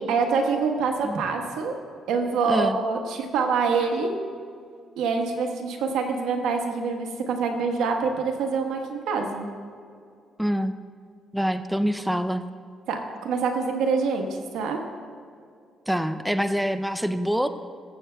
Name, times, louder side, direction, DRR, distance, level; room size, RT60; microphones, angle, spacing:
voice 1, 0.0-1.7 2.1-4.1 5.0-9.5 12.9-14.3 14.5-14.8, right 5 dB, 85° right, 3 dB, 1.2 m, -25 dB
voice 2, 10.4-10.8 11.3-12.5 15.9-17.5, equal, ahead, 9 dB, 0.4 m, -25 dB
19.5 x 7.9 x 2.2 m, 2.2 s
cardioid pair, 90°, 0 cm